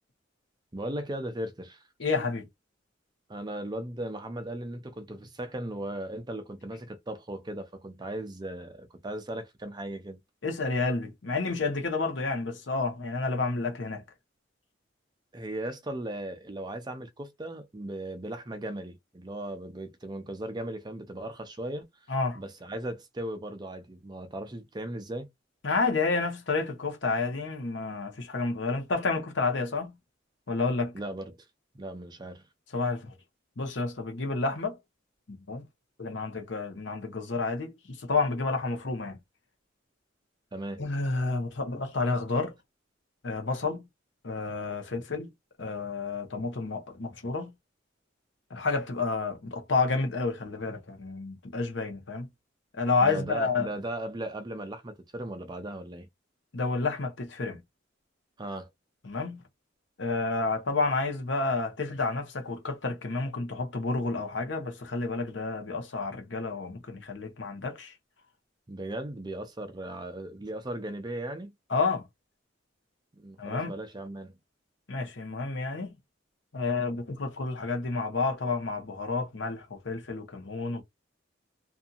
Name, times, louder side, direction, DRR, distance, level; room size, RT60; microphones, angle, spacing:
voice 1, 0.7-1.9 3.3-10.2 15.3-21.9 22.4-25.3 30.9-31.4 31.7-32.4 40.5-40.8 53.0-56.1 58.4-58.7 68.7-71.5 73.1-74.4, right 1 dB, 20° right, 0.5 m, -37 dB
voice 2, 2.0-2.5 10.4-14.0 22.1-22.4 25.6-29.9 30.5-30.9 32.7-33.1 33.6-34.8 35.5-35.6 36.0-39.2 40.8-42.5 43.2-43.8 44.2-45.3 45.6-47.5 48.5-52.3 52.7-53.7 56.5-57.6 59.0-59.4 60.0-67.9 71.7-72.1 73.4-73.7 74.9-75.9 76.5-80.8, left 3 dB, 70° left, 0.9 m, -30 dB
2.7 x 2.6 x 2.4 m
head